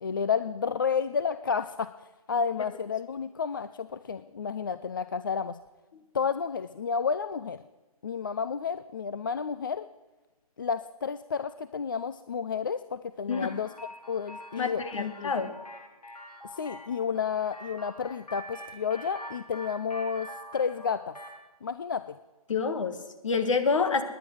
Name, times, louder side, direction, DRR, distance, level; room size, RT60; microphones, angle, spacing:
voice 1, 0.0-1.9 2.3-5.6 6.1-7.6 8.0-9.9 10.6-13.7 14.1-15.3 16.4-21.1 21.6-22.2, left 6 dB, 35° left, 12 dB, 0.4 m, -31 dB
sound 1, 13.3-21.4, equal, 90° left, 2.3 m, -45 dB
voice 2, 14.6-15.5 22.5-24.0, left 5 dB, 55° left, 8 dB, 1.6 m, -28 dB
18.5 x 10.0 x 6.2 m, 1.1 s
figure-of-eight pair, 145°, 19 cm